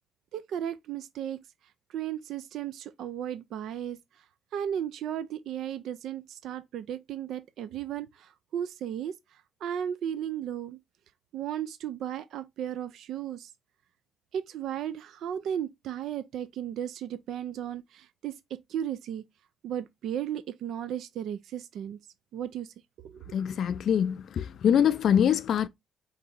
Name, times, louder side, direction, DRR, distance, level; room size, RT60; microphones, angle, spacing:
voice 1, 0.3-1.4 1.9-4.0 4.5-9.2 9.6-10.8 11.3-13.5 14.3-19.2 19.6-22.0 22.3-22.7 23.0-23.1, right 10 dB, 75° right, 0.4 m, -35 dB
voice 2, 23.3-25.7, left 8 dB, 65° left, 0.4 m, -24 dB
4.6 x 2.8 x 3.9 m
cardioid pair, 90°, 0 cm